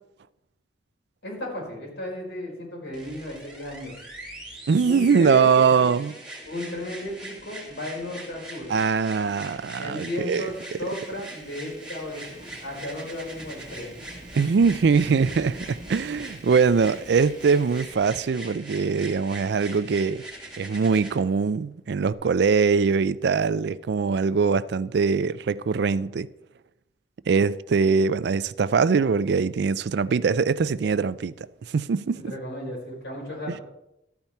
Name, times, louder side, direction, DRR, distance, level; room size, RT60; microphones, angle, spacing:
voice 1, 1.2-3.9 4.8-5.9 6.4-8.7 9.8-13.9 32.1-33.6, left 1 dB, 80° left, 4.7 m, -34 dB
sound 1, 2.9-21.2 22.1-22.2, right 1 dB, 5° right, 2.4 m, -42 dB
voice 2, 4.7-6.1 8.7-10.5 14.4-20.2 20.6-26.3 27.3-32.2 33.5-33.6, right 5 dB, 65° right, 0.4 m, -22 dB
Thunderstorm / Rain, 10.2-17.9, right 1 dB, 45° right, 1.0 m, -46 dB
13.0 x 9.1 x 4.3 m
head